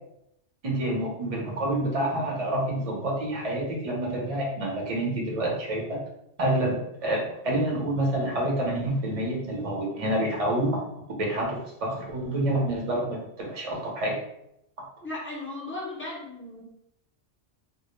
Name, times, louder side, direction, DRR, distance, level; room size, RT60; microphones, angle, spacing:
voice 1, 0.6-6.0 6.4-10.8 11.2-14.2, right 1 dB, 40° right, -2 dB, 0.6 m, -28 dB
voice 2, 15.0-16.6, left 2 dB, 15° left, -5 dB, 0.4 m, -36 dB
2.2 x 2.1 x 3.0 m, 0.80 s
omnidirectional pair, 1.2 m